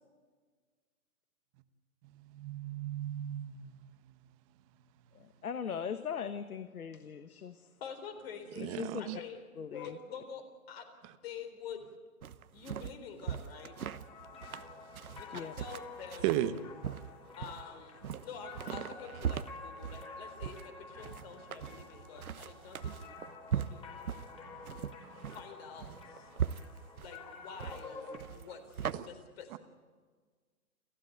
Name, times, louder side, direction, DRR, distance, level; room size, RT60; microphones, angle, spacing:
voice 1, 2.1-3.8 8.6-9.2 16.2-16.5 24.7-24.8 25.0-25.2 28.9-29.1, right 13 dB, 25° right, 11 dB, 1.1 m, -35 dB
voice 2, 5.1-7.7 8.6-9.2 9.5-10.0 15.3-15.5, left 7 dB, 85° left, 10 dB, 1.5 m, -40 dB
voice 3, 7.8-8.7 9.0-9.4 9.7-10.9 11.2-11.8 12.5-13.8 15.2-16.4 17.4-23.2 23.5-23.8 25.3-26.3 27.0-29.6, left 6 dB, 45° left, 7 dB, 4.0 m, -47 dB
sound 1, 12.2-28.9, right 8 dB, 85° right, 1.2 m, -40 dB
sound 2, 13.5-28.2, left 4 dB, 10° left, 4.4 m, -50 dB
28.5 x 15.0 x 9.2 m, 1.5 s
hypercardioid pair, 150°, 43 cm